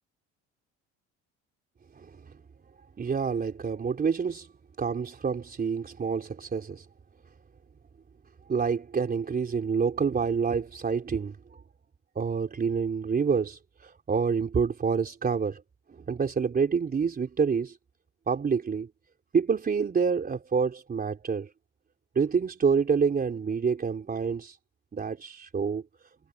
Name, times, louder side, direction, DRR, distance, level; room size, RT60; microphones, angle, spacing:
voice 1, 2.0-2.3 3.0-4.5 4.8-6.9 8.5-11.6 12.2-15.6 16.1-17.8 18.3-18.9 19.3-21.5 22.2-24.6 24.9-25.8, right 6 dB, 30° right, 3.8 m, -27 dB
supercardioid pair, 90°, 29 cm